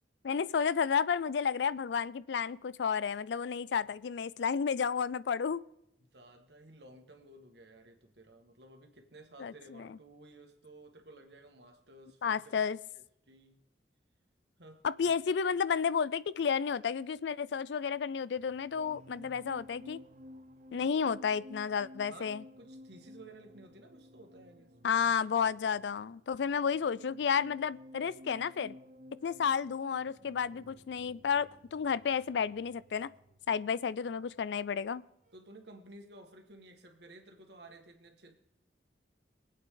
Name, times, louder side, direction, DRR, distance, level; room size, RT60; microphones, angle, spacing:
voice 1, 0.2-5.6 9.4-10.0 12.2-12.8 14.8-20.0 20.7-22.4 24.8-28.7 29.2-33.1 33.5-35.0, left 6 dB, 70° left, 19 dB, 0.4 m, -31 dB
voice 2, 6.0-12.6 12.9-13.6 14.6-15.2 20.8-20.9 22.1-24.7 25.0-25.1 26.5-26.7 35.3-38.4, right 2 dB, 65° right, 4 dB, 1.8 m, -55 dB
sound 1, 18.3-35.0 35.3-35.6, left 1 dB, 40° right, 0.9 m, -54 dB
23.5 x 8.5 x 3.8 m, 0.81 s
head